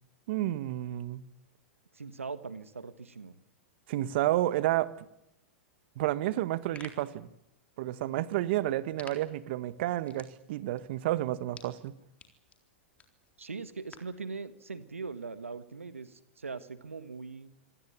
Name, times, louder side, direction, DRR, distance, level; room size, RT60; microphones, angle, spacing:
voice 1, 0.3-1.2 3.9-4.9 6.0-7.3 7.8-12.0, right 14 dB, 55° right, 1.5 m, -30 dB
voice 2, 1.9-3.4 13.4-17.5, right 4 dB, 90° right, 1.6 m, -41 dB
sound 1, 6.4-14.2, left 5 dB, 20° left, 3.8 m, -56 dB
26.0 x 16.5 x 9.6 m
hypercardioid pair, 105°, 7 cm